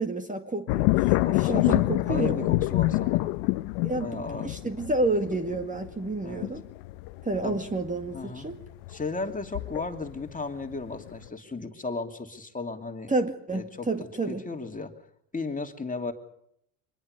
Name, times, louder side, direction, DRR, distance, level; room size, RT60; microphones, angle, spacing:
voice 1, 0.0-2.5 3.8-6.6 7.2-8.6 13.1-14.4, right 2 dB, 15° right, 6 dB, 2.1 m, -30 dB
sound 1, 0.7-10.3 10.7-11.3, left 20 dB, 70° left, 1.0 m, -27 dB
voice 2, 1.2-3.3 4.0-4.6 6.2-6.5 7.4-7.6 8.1-8.5 8.9-13.1 13.5-14.9 15.3-16.1, left 3 dB, 15° left, 5 dB, 2.8 m, -35 dB
24.5 x 21.0 x 6.7 m, 0.73 s
hypercardioid pair, 80°, 47 cm